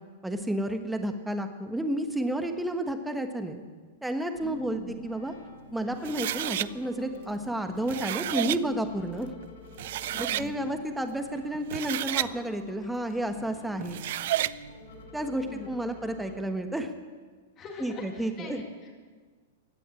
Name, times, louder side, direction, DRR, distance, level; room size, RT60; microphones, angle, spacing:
voice 1, 0.2-3.6 4.0-5.3 5.7-9.3 10.1-14.0 15.1-16.9 17.8-18.6, right 1 dB, 5° right, 7 dB, 1.3 m, -31 dB
sound 1, 4.3-16.4, left 2 dB, 75° left, 6.6 m, -49 dB
voice 2, 4.4-4.9 10.1-10.6 15.5-15.7 17.6-18.9, left 5 dB, 25° left, 0 dB, 2.4 m, -42 dB
sound 2, 6.0-6.7 7.7-8.6 9.4-9.5 9.8-10.5 11.5-12.3 13.8-14.6, right 14 dB, 65° right, 0.5 m, -31 dB
16.0 x 9.1 x 9.8 m, 1.5 s
hypercardioid pair, 140°, 0 cm